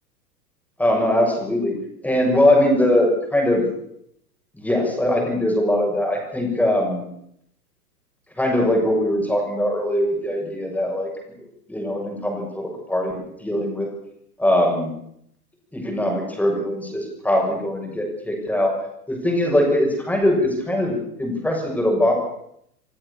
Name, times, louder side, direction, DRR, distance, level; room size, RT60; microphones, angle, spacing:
voice 1, 0.8-1.8 2.0-3.7 4.6-7.1 8.4-11.1 11.7-13.9 14.4-14.9 15.7-18.8 19.1-22.1, left 1 dB, 5° left, 1 dB, 7.1 m, -21 dB
28.0 x 16.5 x 7.0 m, 0.74 s
figure-of-eight pair, 100°, 47 cm